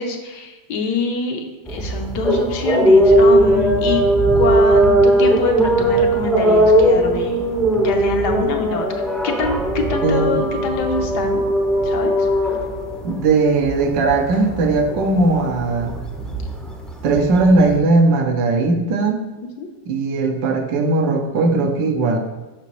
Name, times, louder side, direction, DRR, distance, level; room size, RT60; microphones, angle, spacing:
voice 1, 0.0-4.1 4.4-7.4 7.8-8.9 9.2-11.4 11.8-12.3 19.6-19.7, left 4 dB, 70° left, 4 dB, 1.3 m, -25 dB
sound 1, 1.7-17.8, right 1 dB, ahead, 0.4 m, -18 dB
voice 2, 10.0-10.4 13.0-15.9 17.0-19.2 19.9-22.2, right 3 dB, 80° right, 4 dB, 1.4 m, -18 dB
6.7 x 6.0 x 3.1 m, 1.2 s
omnidirectional pair, 2.0 m